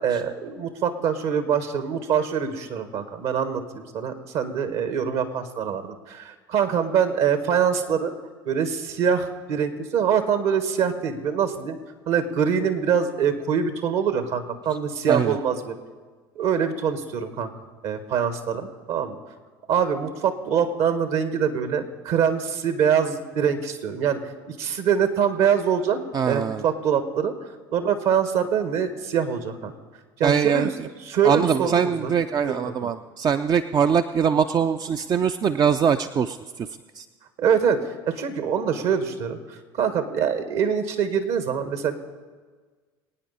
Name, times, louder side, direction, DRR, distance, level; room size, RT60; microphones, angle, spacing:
voice 1, 0.0-8.1 8.4-11.8 12.1-15.7 16.3-17.5 17.8-19.1 19.7-24.2 24.5-26.0 26.2-27.3 27.7-29.7 30.2-30.7 31.1-32.1 32.4-32.9 37.4-42.0, right 7 dB, 60° right, 9 dB, 1.5 m, -24 dB
voice 2, 26.1-26.6 30.2-30.9 31.2-36.7 37.0-37.1, right 7 dB, 35° right, 9 dB, 0.5 m, -22 dB
23.5 x 9.2 x 4.2 m, 1.4 s
hypercardioid pair, 70°, 12 cm